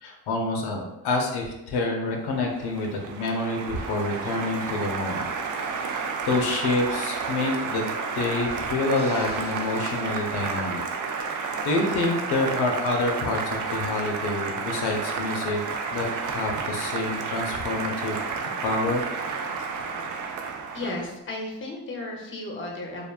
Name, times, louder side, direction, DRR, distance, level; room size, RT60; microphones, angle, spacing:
voice 1, 0.0-5.3 5.9-10.8 11.6-15.6 15.9-19.0, left 2 dB, 75° left, 1 dB, 0.6 m, -27 dB
Applause, 2.2-21.1, right 5 dB, 50° right, 0.4 m, -31 dB
sound 1, 8.9-13.0, left 1 dB, 15° right, 0.7 m, -46 dB
voice 2, 20.7-23.1, left 2 dB, 30° left, 1 dB, 0.7 m, -34 dB
2.4 x 2.1 x 2.3 m, 0.89 s
supercardioid pair, 60°, 40 cm